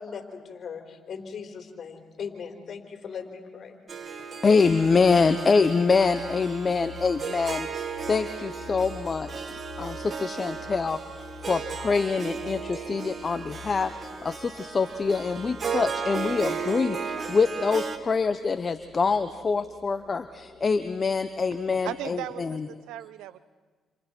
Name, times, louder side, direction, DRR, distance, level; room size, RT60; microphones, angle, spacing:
voice 1, 0.0-3.7, left 6 dB, 55° left, 4.0 m, -39 dB
Harp, 3.9-18.0, right 6 dB, 45° right, 1.8 m, -35 dB
voice 2, 4.4-22.7, left 4 dB, 40° left, 0.9 m, -25 dB
sound 1, 4.7-22.1, left 8 dB, 85° left, 1.3 m, -49 dB
sound 2, 7.7-22.8, left 2 dB, 15° left, 6.3 m, -53 dB
voice 3, 21.8-23.4, right 13 dB, 85° right, 0.8 m, -37 dB
29.0 x 27.5 x 4.5 m
supercardioid pair, 70°, 0 cm